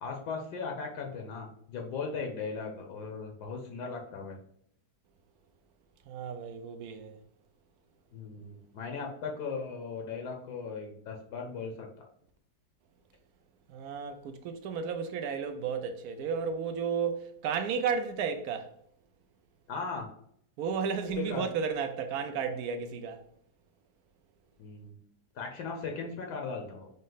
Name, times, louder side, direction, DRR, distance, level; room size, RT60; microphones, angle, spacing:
voice 1, 0.0-4.4 8.1-12.0 19.7-20.1 21.2-21.5 24.6-25.0 25.3-26.9, left 4 dB, 75° left, 1.3 m, -38 dB
voice 2, 6.1-7.1 13.7-18.7 20.6-23.2, right 6 dB, 70° right, 1.0 m, -33 dB
5.3 x 2.0 x 3.8 m
omnidirectional pair, 1.8 m